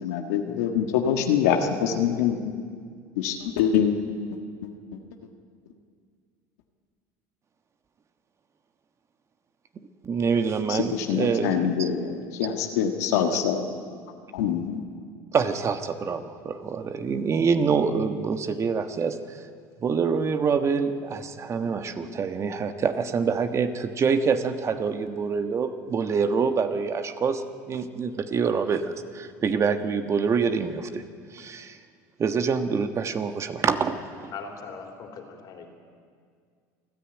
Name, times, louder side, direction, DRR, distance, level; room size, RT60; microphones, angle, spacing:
voice 1, 0.0-2.5 3.2-3.9 4.6-5.0 10.7-13.6 14.3-14.8, left 8 dB, 85° left, 4 dB, 1.5 m, -25 dB
voice 2, 10.0-11.9 15.3-19.4 19.8-31.0 31.3-31.8 32.2-34.3, right 5 dB, 35° right, 8 dB, 1.3 m, -26 dB
voice 3, 34.3-35.7, left 5 dB, 55° left, 4 dB, 3.7 m, -40 dB
28.0 x 10.0 x 9.1 m, 2.1 s
supercardioid pair, 95°, 8 cm